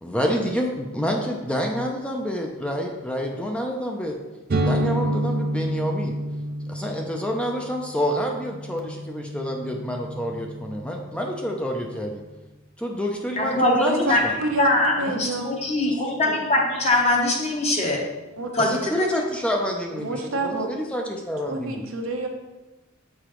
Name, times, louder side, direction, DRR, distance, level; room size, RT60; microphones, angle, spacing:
voice 1, 0.0-4.2 4.6-6.1 6.7-12.2 12.8-14.4 18.6-21.8, equal, 5° left, 1 dB, 0.5 m, -28 dB
sound 1, 4.5-12.1, right 1 dB, 45° right, 0.5 m, -30 dB
voice 2, 13.4-14.2 14.6-18.0 18.5-19.1, left 1 dB, 30° left, 0 dB, 1.0 m, -22 dB
voice 3, 14.4-15.5 16.2-16.4 18.4-18.5 19.9-20.7 21.5-22.3, right 2 dB, 85° right, 3 dB, 0.9 m, -28 dB
6.8 x 4.8 x 3.0 m, 1.1 s
head